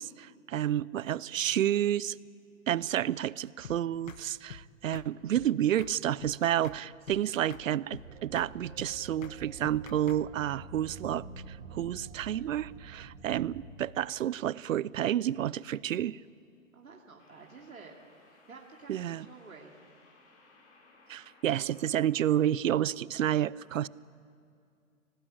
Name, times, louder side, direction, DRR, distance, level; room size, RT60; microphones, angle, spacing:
voice 1, 0.0-2.2 2.7-16.2 18.9-19.2 21.1-23.9, right 11 dB, 70° right, 22 dB, 0.6 m, -30 dB
sound 1, 3.6-3.8 4.1-4.2 4.5-4.7 4.9-5.1 5.4-5.5 5.8-5.9 6.2-6.8 7.1-7.2 7.5-7.7 7.9-8.1 8.4-8.5 8.8-8.9 9.2-9.4 9.6-10.2, left 8 dB, 70° left, 1.3 m, -45 dB
sound 2, 8.0-13.7, right 4 dB, 50° right, 3.6 m, -47 dB
sound 3, 13.2-13.5 17.2-22.4, left 3 dB, 55° left, 5.9 m, -61 dB
voice 2, 16.7-19.8, right 4 dB, 90° right, 0 dB, 2.9 m, -51 dB
25.5 x 18.5 x 8.7 m, 2.4 s
hypercardioid pair, 130°, 41 cm